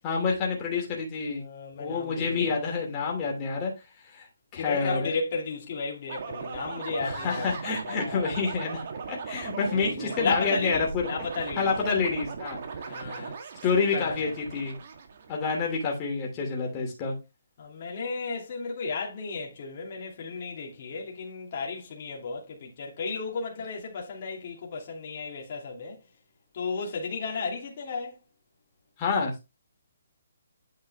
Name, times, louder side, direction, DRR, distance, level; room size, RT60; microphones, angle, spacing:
voice 1, 0.0-1.4 1.8-3.7 4.1-4.3 4.5-5.1 7.0-11.1 11.6-13.3 13.6-14.8 15.3-17.2 29.0-29.3, left 4 dB, 20° left, 2.8 m, -28 dB
voice 2, 1.3-2.6 4.5-7.4 7.9-8.3 9.7-11.7 12.9-13.3 13.9-14.3 17.6-26.0 26.5-28.2, left 4 dB, 40° left, 2.6 m, -34 dB
sound 1, 6.1-15.6, right 5 dB, 45° right, 1.6 m, -38 dB
9.3 x 4.8 x 3.5 m
hypercardioid pair, 165°, 0 cm